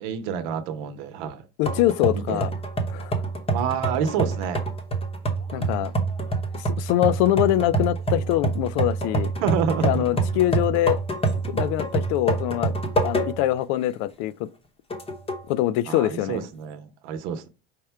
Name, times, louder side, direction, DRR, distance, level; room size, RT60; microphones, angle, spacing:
voice 1, 0.0-1.5 2.1-2.4 3.5-4.6 5.5-6.0 9.4-10.2 15.9-17.5, right 7 dB, 70° right, 0.9 m, -28 dB
voice 2, 1.6-2.5 2.9-3.2 5.5-5.9 6.5-9.3 9.8-11.0 11.5-12.7 13.0-14.5 15.5-16.4, left 14 dB, 65° left, 0.4 m, -24 dB
sound 1, 1.7-13.6 14.0-14.1 14.9-15.5, right 2 dB, 20° left, 0.9 m, -27 dB
5.0 x 2.2 x 4.4 m
supercardioid pair, 120°, 31 cm